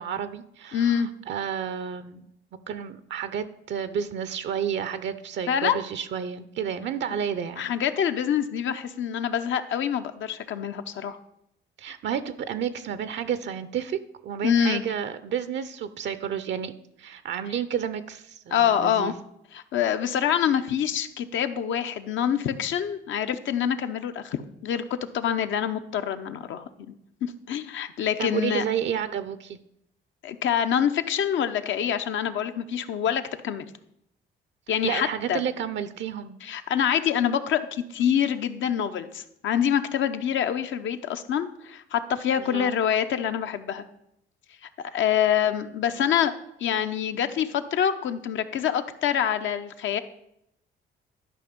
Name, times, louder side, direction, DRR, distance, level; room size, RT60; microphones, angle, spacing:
voice 1, 0.0-2.3 2.7-7.7 11.8-16.7 17.0-19.1 28.2-29.6 34.8-36.4 42.4-42.8, right 8 dB, 65° right, 13 dB, 0.6 m, -31 dB
voice 2, 0.7-1.1 5.5-5.8 7.6-11.2 14.4-14.8 18.5-19.2 19.5-24.8 25.1-26.9 27.2-28.6 30.2-33.7 34.7-35.4 36.4-43.8 44.6-46.3 46.6-50.0, left 9 dB, 70° left, 9 dB, 0.8 m, -26 dB
12.0 x 5.4 x 5.1 m, 0.78 s
cardioid pair, 90°, 20 cm